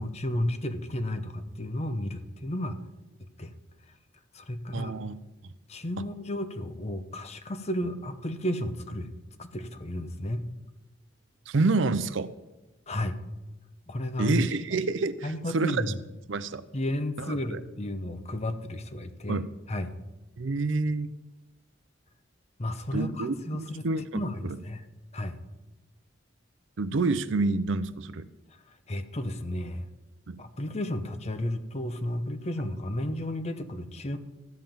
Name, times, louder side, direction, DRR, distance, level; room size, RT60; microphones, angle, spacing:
voice 1, 0.0-2.8 3.2-3.5 4.3-4.9 5.7-9.1 9.4-10.4 12.9-13.2 13.9-14.4 15.2-16.0 16.7-19.9 22.6-23.9 24.1-24.8 25.1-25.4 28.7-29.9 30.4-34.2, left 1 dB, 35° left, 9 dB, 0.8 m, -33 dB
voice 2, 4.7-5.2 6.0-6.1 11.5-12.3 14.2-15.8 16.3-16.6 17.3-17.6 19.3-19.5 20.4-21.1 22.9-24.6 26.8-28.3 30.3-30.4, right 3 dB, 70° right, 14 dB, 0.6 m, -28 dB
14.0 x 5.7 x 7.1 m, 1.1 s
head